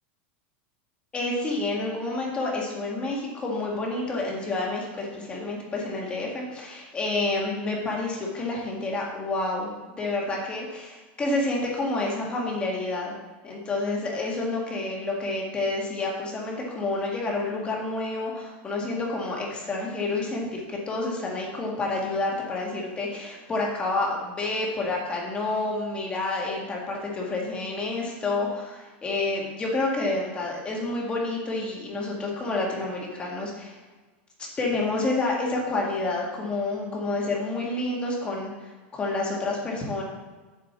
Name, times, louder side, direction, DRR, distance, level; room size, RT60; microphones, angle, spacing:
voice 1, 1.1-13.1 13.4-33.8 34.4-40.0, left 2 dB, 20° left, -2 dB, 1.8 m, -29 dB
7.9 x 5.0 x 7.1 m, 1.3 s
supercardioid pair, 145°, 6 cm